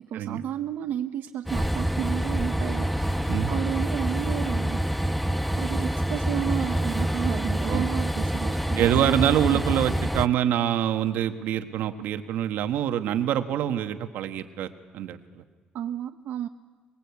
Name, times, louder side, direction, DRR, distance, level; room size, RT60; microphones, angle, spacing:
voice 1, 0.0-4.8 5.3-9.6 15.7-16.5, right 10 dB, 75° right, 7 dB, 0.7 m, -32 dB
Train, 1.5-10.3, right 1 dB, ahead, 0.7 m, -27 dB
voice 2, 8.8-15.4, right 11 dB, 90° right, 8 dB, 1.4 m, -25 dB
24.0 x 22.0 x 8.4 m, 1.5 s
cardioid pair, 125°, 3 cm